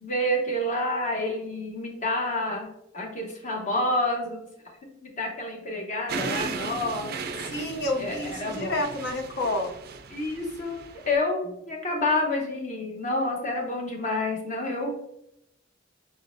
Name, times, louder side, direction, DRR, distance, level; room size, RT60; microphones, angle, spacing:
voice 1, 0.0-2.7 2.9-4.5 4.9-7.1 8.0-8.8 10.1-14.9, left 1 dB, 40° left, 0 dB, 1.0 m, -28 dB
sound 1, 6.1-11.1, right 5 dB, 55° right, 0.4 m, -36 dB
voice 2, 7.5-9.7, left 1 dB, 60° left, 3 dB, 0.6 m, -29 dB
5.1 x 3.7 x 2.6 m, 0.77 s
head